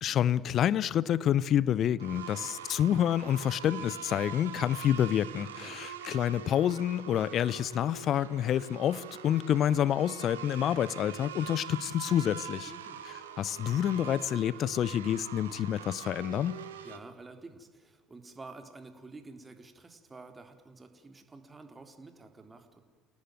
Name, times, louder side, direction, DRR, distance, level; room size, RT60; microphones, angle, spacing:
voice 1, 0.0-12.7 13.4-16.6, left 10 dB, 50° left, 0.9 m, -28 dB
sound 1, 2.0-17.0, right 8 dB, 80° right, 1.8 m, -44 dB
voice 2, 12.7-13.0 16.8-22.8, right 3 dB, 25° right, 3.6 m, -50 dB
29.0 x 18.0 x 9.2 m
figure-of-eight pair, 60°, 0 cm